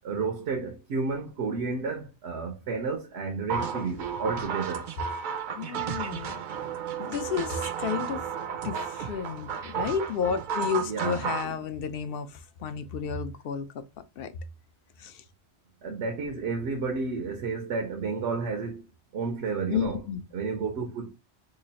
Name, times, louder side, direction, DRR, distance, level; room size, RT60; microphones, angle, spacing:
voice 1, 0.0-4.9 10.9-11.5 15.8-18.9 19.1-20.0 20.3-21.1, right 4 dB, 80° right, 0.9 m, -31 dB
sound 1, 3.5-11.5, right 7 dB, 60° right, 0.6 m, -33 dB
voice 2, 5.5-6.5 7.0-8.3 8.6-13.8 14.2-14.3 15.0-15.2 19.7-20.2, left 7 dB, 65° left, 0.7 m, -32 dB
3.0 x 2.4 x 4.0 m
omnidirectional pair, 1.1 m